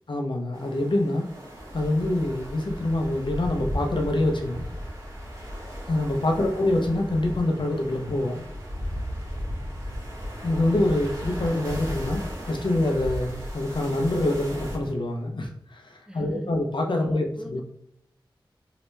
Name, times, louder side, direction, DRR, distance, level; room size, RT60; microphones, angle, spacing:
voice 1, 0.1-1.3 1.7-4.7 5.9-8.4 10.4-17.6, left 1 dB, 65° left, 2 dB, 0.7 m, -25 dB
sound 1, 0.5-14.9, equal, 40° right, 1.4 m, -35 dB
voice 2, 16.1-16.5 17.0-17.6, equal, 10° right, 3 dB, 0.5 m, -41 dB
3.2 x 2.9 x 3.2 m, 0.75 s
wide cardioid pair, 50°, 9 cm